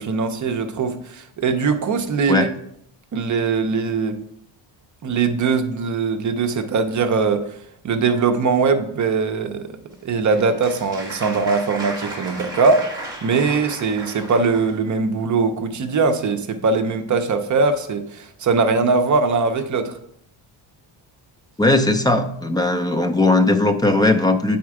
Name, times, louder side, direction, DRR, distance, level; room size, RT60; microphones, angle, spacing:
voice 1, 0.0-2.5 3.1-4.2 5.0-7.5 7.8-20.0, right 4 dB, 40° right, 6 dB, 0.7 m, -21 dB
Applause, 9.9-14.7, right 1 dB, 10° right, 1.7 m, -34 dB
voice 2, 21.6-24.6, left 2 dB, 10° left, 6 dB, 0.4 m, -18 dB
8.4 x 4.3 x 4.8 m, 0.73 s
cardioid pair, 150°, 48 cm